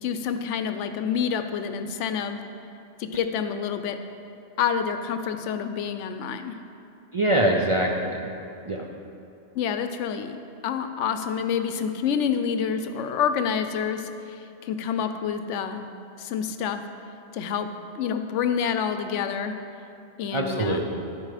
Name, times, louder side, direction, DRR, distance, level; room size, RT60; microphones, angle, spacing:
voice 1, 0.0-2.4 3.0-4.0 4.6-6.6 9.5-15.9 16.2-16.8 17.3-17.7 17.9-19.5 20.2-20.8, left 7 dB, 85° left, 9 dB, 0.9 m, -28 dB
voice 2, 7.1-8.3 8.7-8.8 20.3-20.8, right 1 dB, 45° right, -1 dB, 0.4 m, -23 dB
13.0 x 4.6 x 4.9 m, 2.6 s
omnidirectional pair, 1.2 m